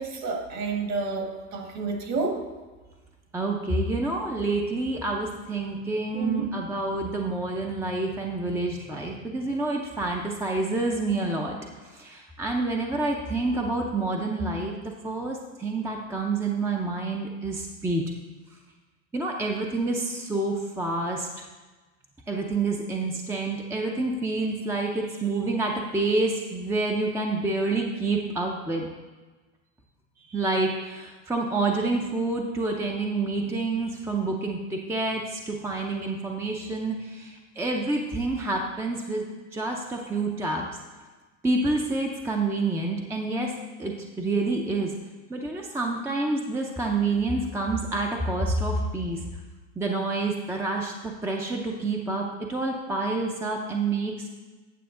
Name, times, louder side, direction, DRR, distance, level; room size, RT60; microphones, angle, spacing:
voice 1, 0.0-2.4 6.1-6.5, right 3 dB, 40° right, 3 dB, 1.5 m, -30 dB
voice 2, 3.3-11.6 11.8-14.8 15.0-18.0 19.1-21.4 22.3-28.9 30.3-39.2 39.5-40.7 41.4-43.5 43.8-44.9 45.3-49.2 49.8-54.3, right 2 dB, 5° right, 1 dB, 0.5 m, -28 dB
9.3 x 6.8 x 3.7 m, 1.3 s
supercardioid pair, 130°, 40 cm